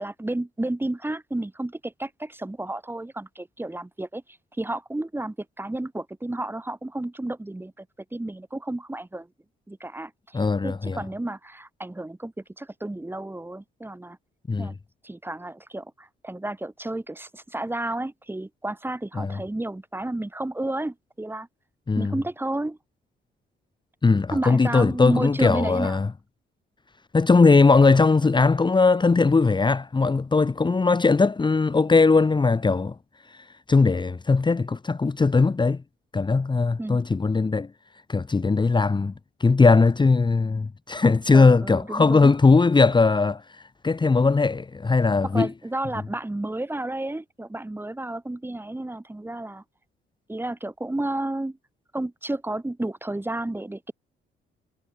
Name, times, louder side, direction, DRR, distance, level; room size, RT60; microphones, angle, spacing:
voice 1, 0.0-4.2 4.6-7.9 8.1-9.3 9.7-14.2 14.6-14.8 15.0-21.5 22.0-22.8 24.3-26.0 36.8-37.0 41.3-42.3 45.2-49.6 50.3-51.6 51.9-53.9, right 1 dB, 10° right, 2.3 m, -31 dB
voice 2, 10.3-11.0 14.5-14.7 19.2-19.4 21.9-22.1 24.0-26.1 27.1-32.9 33.3-35.8 36.1-37.7 38.1-39.1 39.4-45.5, left 4 dB, 25° left, 1.3 m, -19 dB
cardioid pair, 90°, 20 cm